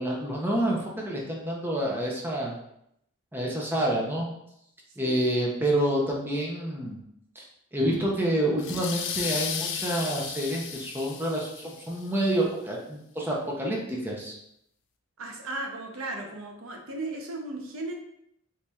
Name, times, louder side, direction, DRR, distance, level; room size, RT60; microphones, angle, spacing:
voice 1, 0.0-2.5 3.3-4.3 5.0-7.0 7.4-7.5 7.7-14.4, right 1 dB, 10° right, -2 dB, 0.6 m, -28 dB
sound 1, 8.6-12.0, left 7 dB, 60° left, 0.4 m, -34 dB
voice 2, 15.2-17.9, right 2 dB, 80° right, 2 dB, 0.7 m, -36 dB
4.2 x 3.2 x 2.3 m, 0.77 s
head